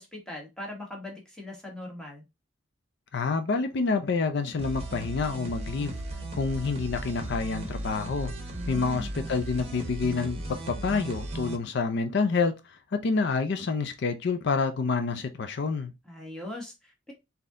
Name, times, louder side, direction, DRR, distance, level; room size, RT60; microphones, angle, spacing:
voice 1, 0.0-2.2 8.5-9.1 16.0-17.1, left 1 dB, 5° left, 1.2 m, -40 dB
voice 2, 3.1-6.0 6.3-8.3 8.7-15.9, left 4 dB, 60° left, 0.4 m, -28 dB
sound 1, 4.6-11.6, right 2 dB, 30° right, 0.9 m, -36 dB
4.0 x 2.8 x 3.7 m
head